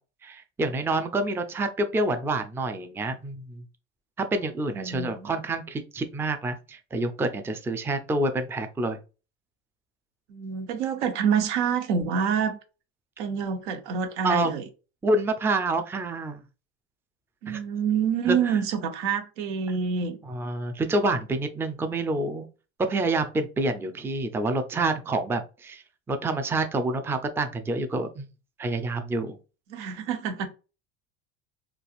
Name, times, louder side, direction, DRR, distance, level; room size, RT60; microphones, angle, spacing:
voice 1, 0.2-3.6 4.2-9.0 14.2-14.6 15.0-16.4 17.5-17.6 18.3-18.6 20.3-22.5 22.8-25.8 26.1-28.3 28.6-29.4, right 2 dB, 5° right, 0.4 m, -27 dB
voice 2, 4.7-5.3 10.3-12.6 13.2-14.7 17.4-20.2 29.7-30.5, right 7 dB, 80° right, 0.7 m, -27 dB
3.3 x 2.4 x 2.4 m
hypercardioid pair, 85°, 34 cm